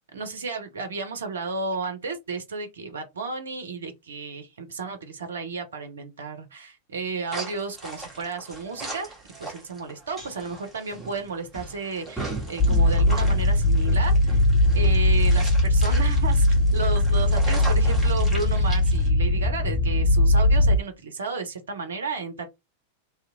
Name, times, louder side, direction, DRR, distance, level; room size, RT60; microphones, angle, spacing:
voice 1, 0.1-9.1 9.4-14.4 14.7-16.5 16.7-22.5, right 4 dB, 65° right, 0.6 m, -33 dB
sound 1, 7.3-19.1, right 2 dB, 10° right, 1.1 m, -38 dB
sound 2, 12.6-20.8, left 1 dB, 35° left, 0.5 m, -20 dB
2.7 x 2.0 x 2.6 m
figure-of-eight pair, 90°, 0 cm